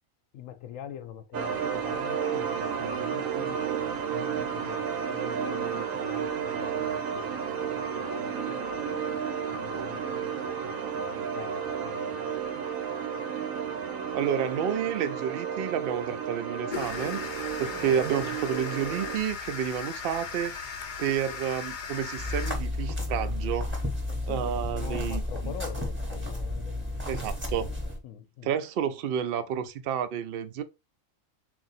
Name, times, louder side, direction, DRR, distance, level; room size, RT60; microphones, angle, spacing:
voice 1, 0.3-3.6 4.0-12.3 17.7-18.0 24.1-26.9 28.0-28.5 29.1-29.2, left 9 dB, 80° left, 1.0 m, -44 dB
sound 1, 1.3-19.2, right 7 dB, 80° right, 1.1 m, -32 dB
voice 2, 14.1-17.3 17.6-23.7 24.3-25.5 27.1-27.7 28.4-30.6, right 8 dB, 65° right, 0.6 m, -30 dB
sound 2, 16.7-22.5, left 6 dB, 50° left, 0.6 m, -37 dB
sound 3, 22.2-28.0, left 1 dB, 10° right, 0.8 m, -32 dB
3.7 x 2.7 x 4.0 m
omnidirectional pair, 1.4 m